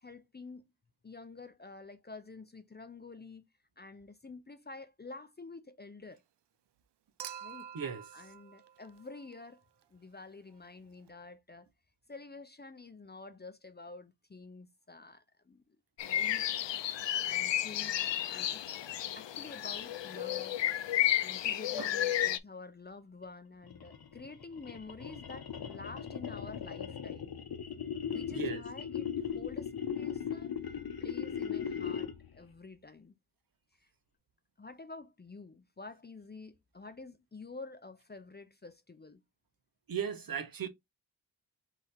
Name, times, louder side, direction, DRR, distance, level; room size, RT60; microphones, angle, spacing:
voice 1, 0.0-0.7 1.0-3.5 3.8-6.2 7.4-7.7 8.1-9.6 9.9-11.7 12.1-15.6 16.0-16.5 17.2-18.7 19.2-20.6 21.2-27.3 28.1-30.6 31.0-33.1 33.8-33.9 34.6-39.2, left 3 dB, 25° left, 0.6 m, -49 dB
Human group actions / Chink clink / Liquid, 7.2-9.6 11.1-11.2, right 9 dB, 70° right, 0.6 m, -47 dB
voice 2, 7.7-8.0 21.8-21.9 28.3-28.6 39.9-40.7, right 7 dB, 55° right, 0.9 m, -36 dB
sound 1, 16.0-22.4, left 12 dB, 85° left, 0.6 m, -32 dB
sound 2, 23.6-32.3, left 8 dB, 60° left, 0.9 m, -38 dB
3.6 x 3.2 x 4.2 m
wide cardioid pair, 100°, 43 cm